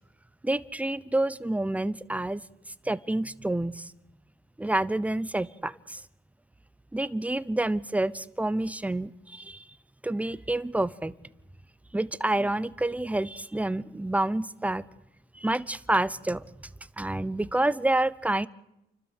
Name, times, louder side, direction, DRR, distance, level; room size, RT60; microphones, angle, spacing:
voice 1, 0.4-2.4 2.8-3.9 4.6-6.0 6.9-9.7 10.0-11.1 11.9-14.8 15.3-16.7 17.0-18.5, right 1 dB, 5° right, 17 dB, 0.7 m, -28 dB
29.5 x 12.5 x 8.1 m, 0.89 s
cardioid pair, 90°, 20 cm